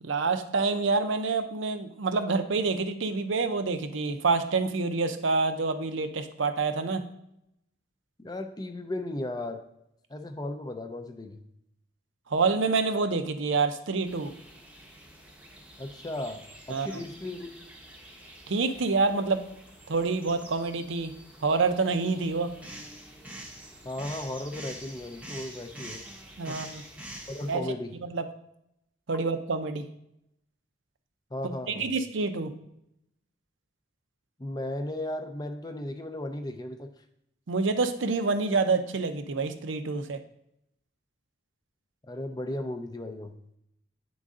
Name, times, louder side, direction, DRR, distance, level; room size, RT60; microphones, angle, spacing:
voice 1, 0.0-7.0 12.3-14.3 16.7-17.0 18.5-19.5 19.9-21.1 21.4-22.5 26.4-26.8 27.5-27.6 28.0-28.3 29.1-29.8 31.4-32.5 37.5-40.2, right 4 dB, 80° right, 8 dB, 0.6 m, -27 dB
voice 2, 8.2-9.6 10.1-11.4 15.8-17.5 23.8-26.0 26.5-26.6 27.3-27.9 31.3-31.9 34.4-36.9 42.1-43.4, left 1 dB, 20° left, 7 dB, 0.5 m, -35 dB
sound 1, 14.0-27.6, right 1 dB, 5° right, 0.8 m, -47 dB
9.3 x 3.9 x 3.7 m, 0.79 s
head